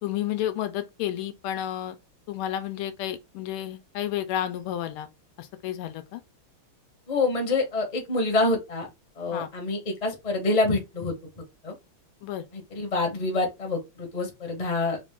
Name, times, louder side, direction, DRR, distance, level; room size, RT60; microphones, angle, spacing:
voice 1, 0.0-1.9 2.3-5.1 5.4-6.2 9.3-9.5 12.2-12.5, left 11 dB, 85° left, 1.5 m, -31 dB
voice 2, 7.1-8.9 9.2-11.1 11.6-11.7 12.5-15.0, left 2 dB, 30° left, 0.8 m, -26 dB
4.3 x 2.4 x 3.5 m
omnidirectional pair, 2.4 m